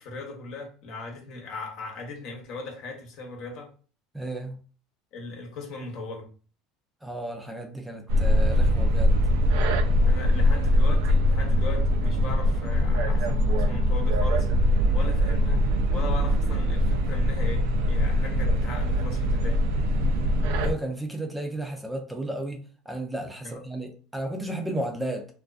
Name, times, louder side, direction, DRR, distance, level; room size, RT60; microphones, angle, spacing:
voice 1, 0.0-3.7 5.1-6.3 10.0-19.8 23.4-23.6, left 3 dB, 65° left, 0.9 m, -38 dB
voice 2, 4.1-4.6 7.0-9.2 20.6-25.3, right 1 dB, 5° right, 0.4 m, -33 dB
sound 1, 8.1-20.7, equal, 80° right, 0.3 m, -22 dB
2.4 x 2.3 x 2.3 m
supercardioid pair, 100°, 0 cm